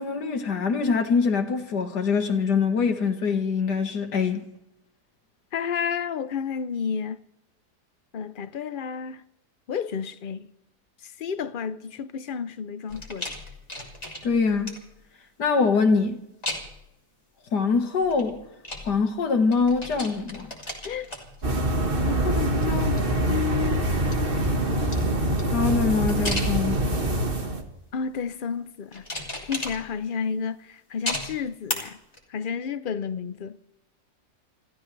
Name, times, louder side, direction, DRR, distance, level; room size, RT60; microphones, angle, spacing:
voice 1, 0.0-4.4 14.2-14.7 15.4-16.2 17.5-18.4 18.9-20.5 25.5-27.2, left 5 dB, 80° left, 2.1 m, -24 dB
voice 2, 5.5-7.2 8.1-9.2 9.7-10.5 11.0-13.3 20.8-21.1 22.0-23.9 27.9-29.1 29.4-32.0 32.3-33.6, left 7 dB, 55° left, 0.6 m, -31 dB
sound 1, 12.9-15.0 16.4-16.9 18.0-19.3 19.5-22.0 22.3-23.4 23.9-27.1 27.7-28.2 28.9-30.2 31.1-31.7 32.1-32.2, left 1 dB, 25° left, 3.0 m, -36 dB
sound 2, 21.4-27.6, right 1 dB, 35° right, 1.7 m, -24 dB
28.0 x 14.5 x 3.3 m
omnidirectional pair, 1.7 m